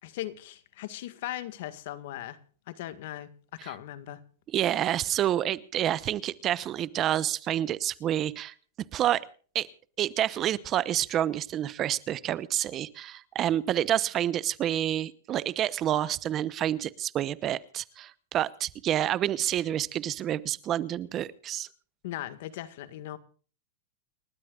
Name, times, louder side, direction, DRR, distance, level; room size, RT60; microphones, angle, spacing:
voice 1, 0.0-2.4 2.7-3.3 3.6-4.2 22.0-23.2, left 13 dB, 65° left, 12 dB, 1.8 m, -38 dB
voice 2, 4.5-8.5 8.9-9.3 9.5-9.7 10.0-21.7, right 11 dB, 30° right, 17 dB, 0.9 m, -28 dB
30.0 x 12.5 x 2.5 m, 0.41 s
hypercardioid pair, 130°, 0 cm